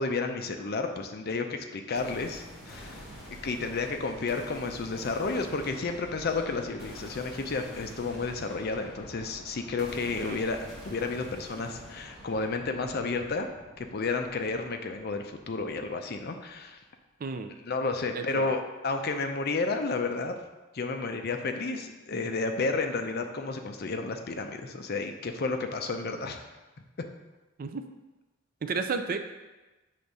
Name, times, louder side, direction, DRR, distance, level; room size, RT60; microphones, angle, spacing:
voice 1, 0.0-3.0 3.4-13.5 13.8-16.8 17.6-20.4 20.7-26.4 27.0-27.1, left 3 dB, 45° left, 6 dB, 0.5 m, -31 dB
sound 1, 1.9-15.9, equal, ahead, 2.1 m, -47 dB
voice 2, 17.2-17.5 18.1-18.6 27.6-27.8 28.6-29.2, right 4 dB, 40° right, 7 dB, 0.4 m, -32 dB
6.6 x 3.5 x 5.4 m, 1.1 s
head